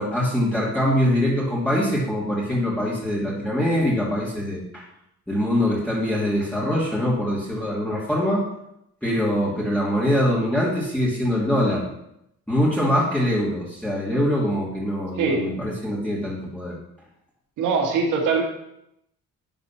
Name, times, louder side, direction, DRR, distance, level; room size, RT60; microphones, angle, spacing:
voice 1, 0.0-4.8 5.3-8.5 9.0-11.9 12.5-16.8, equal, 5° left, -7 dB, 2.7 m, -23 dB
voice 2, 15.2-15.5 17.6-18.4, right 5 dB, 90° right, 1 dB, 2.1 m, -22 dB
11.0 x 4.2 x 5.8 m, 0.79 s
cardioid pair, 90°, 30 cm